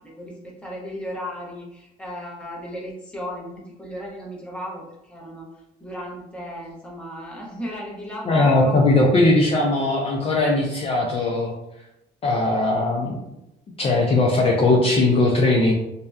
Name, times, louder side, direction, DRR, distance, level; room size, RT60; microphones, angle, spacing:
voice 1, 0.0-8.8, equal, 5° left, -3 dB, 0.8 m, -35 dB
voice 2, 8.3-11.5 12.2-13.2 13.8-15.7, left 2 dB, 35° left, -2 dB, 0.4 m, -19 dB
2.6 x 2.1 x 2.3 m, 0.88 s
cardioid pair, 110°, 17 cm